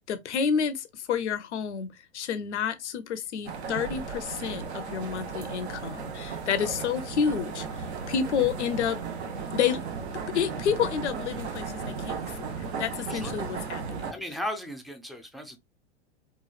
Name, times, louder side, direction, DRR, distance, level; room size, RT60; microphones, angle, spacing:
voice 1, 0.1-9.0 9.3-9.8 10.3-12.5 12.8-14.1, left 7 dB, 90° left, 0.5 m, -29 dB
sound 1, 3.4-14.1, right 5 dB, 75° right, 0.7 m, -35 dB
voice 2, 14.1-15.6, left 1 dB, ahead, 0.3 m, -36 dB
2.9 x 2.3 x 2.3 m
hypercardioid pair, 100°, 33 cm